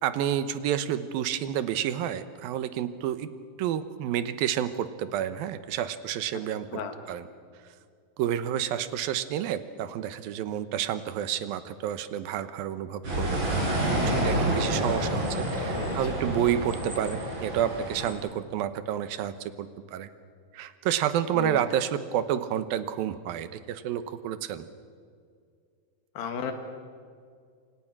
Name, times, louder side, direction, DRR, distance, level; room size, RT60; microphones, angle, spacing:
voice 1, 0.0-3.3 3.6-6.7 7.1-7.3 8.2-13.6 13.9-20.1 20.5-24.7, right 10 dB, 85° right, 12 dB, 2.9 m, -30 dB
sound 1, 13.0-18.1, right 1 dB, 30° right, 5.8 m, -28 dB
voice 2, 15.6-16.0 21.3-21.6 26.2-26.5, left 7 dB, 80° left, 6 dB, 3.6 m, -34 dB
27.0 x 27.0 x 6.2 m, 2.2 s
omnidirectional pair, 4.1 m